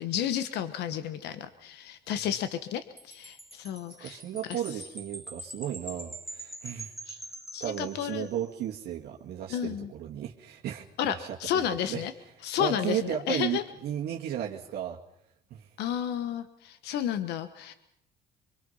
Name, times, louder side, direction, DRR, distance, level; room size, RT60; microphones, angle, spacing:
voice 1, 0.0-4.6 7.1-7.2 7.5-8.3 9.5-9.9 11.0-12.1 12.4-13.6 15.8-17.7, left 10 dB, 80° left, 11 dB, 1.4 m, -32 dB
Wind chime, 3.0-8.7, right 1 dB, ahead, 2.0 m, -44 dB
voice 2, 4.0-6.9 7.6-12.0 12.6-15.0 15.5-15.6, right 10 dB, 70° right, -2 dB, 2.1 m, -34 dB
25.5 x 24.5 x 5.7 m, 0.73 s
cardioid pair, 110°, 17 cm